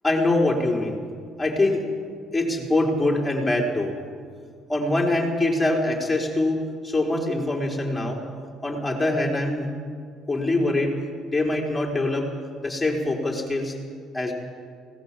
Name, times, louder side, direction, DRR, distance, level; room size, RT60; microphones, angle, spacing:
voice 1, 0.0-1.0 1.4-1.8 2.3-3.9 4.7-8.2 8.6-9.7 10.3-10.9 11.3-12.3 12.6-13.8 14.1-14.3, left 2 dB, 10° left, -1 dB, 4.8 m, -23 dB
19.5 x 18.0 x 7.9 m, 2.1 s
supercardioid pair, 85°, 0 cm